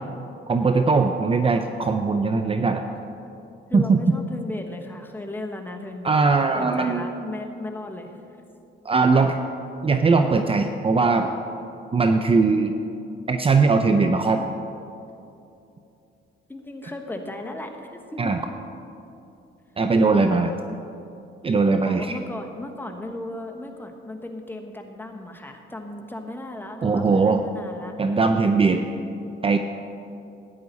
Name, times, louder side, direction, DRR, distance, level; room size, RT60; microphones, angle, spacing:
voice 1, 0.5-2.8 3.7-4.0 6.0-7.2 8.8-9.4 9.8-11.3 11.9-12.8 13.3-14.4 18.2-18.4 19.8-20.5 21.4-22.1 26.8-27.4 28.0-28.8 29.4-29.6, right 4 dB, 30° right, 6 dB, 0.6 m, -20 dB
voice 2, 3.7-8.1 16.5-18.4 20.0-20.5 21.8-27.9, left 2 dB, 10° left, 3 dB, 1.2 m, -36 dB
13.5 x 9.5 x 4.1 m, 2.7 s
cardioid pair, 90°, 20 cm